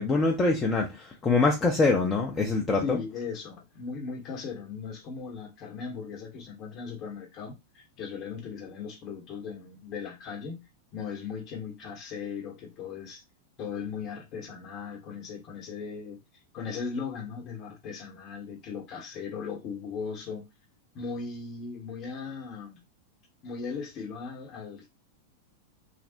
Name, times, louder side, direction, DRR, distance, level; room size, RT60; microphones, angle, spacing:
voice 1, 0.0-3.0, left 3 dB, 20° left, 0.5 m, -24 dB
voice 2, 2.8-10.6 10.9-13.2 13.6-16.2 16.5-20.5 20.9-22.8 23.4-24.9, left 5 dB, 35° left, 0.9 m, -38 dB
3.2 x 2.0 x 2.7 m
figure-of-eight pair, 90°, 0 cm